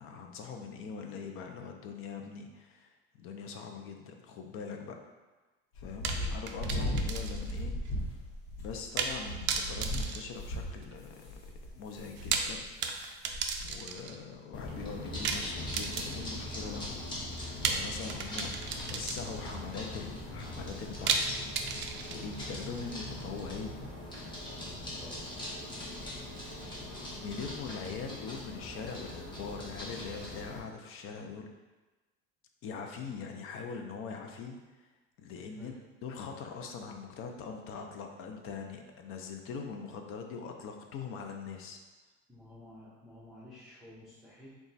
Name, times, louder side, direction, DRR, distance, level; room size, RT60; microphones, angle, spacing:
voice 1, 0.0-5.0 5.8-7.7 8.6-11.4 11.7-12.7 13.6-21.4 22.1-23.8 27.2-31.5 32.6-34.9 35.2-41.8, left 5 dB, 45° left, 3 dB, 0.5 m, -42 dB
sound 1, 5.8-13.0 13.3-13.8 14.1-14.2 14.7-14.8, equal, 90° left, 1.0 m, -37 dB
sound 2, 6.0-7.6 7.8-7.9 9.0-9.2 9.5-11.0 12.1-14.2 15.2-16.4 17.6-19.5 21.1-22.4, right 5 dB, 40° right, 0.4 m, -34 dB
sound 3, 14.5-30.6, left 1 dB, 15° left, 1.0 m, -41 dB
voice 2, 42.3-44.5, left 1 dB, ahead, -10 dB, 0.6 m, -52 dB
4.1 x 2.3 x 3.9 m, 1.2 s
cardioid pair, 135°, 29 cm